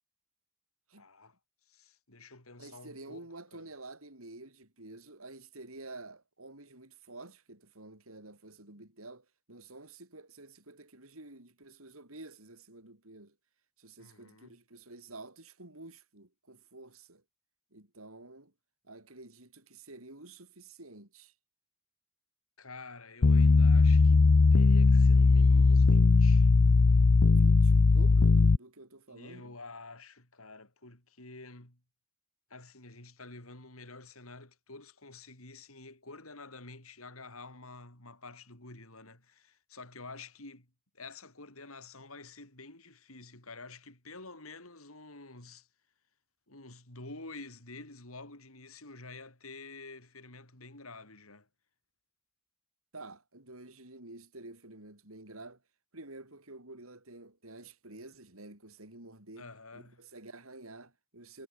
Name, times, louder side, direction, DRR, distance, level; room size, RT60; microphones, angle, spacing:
voice 1, 0.9-1.4 1.7-3.7 14.0-14.6 22.6-24.2 24.5-26.5 29.1-31.8 32.5-40.7 40.9-45.7 46.5-51.5 59.4-60.0, left 3 dB, 85° left, 7.0 m, -49 dB
voice 2, 2.6-13.3 13.8-17.2 17.7-18.5 18.8-21.3 27.3-29.6 52.9-55.6 55.9-61.5, right 2 dB, 80° right, 6.3 m, -50 dB
sound 1, 23.2-28.6, left 3 dB, 65° left, 0.6 m, -20 dB
head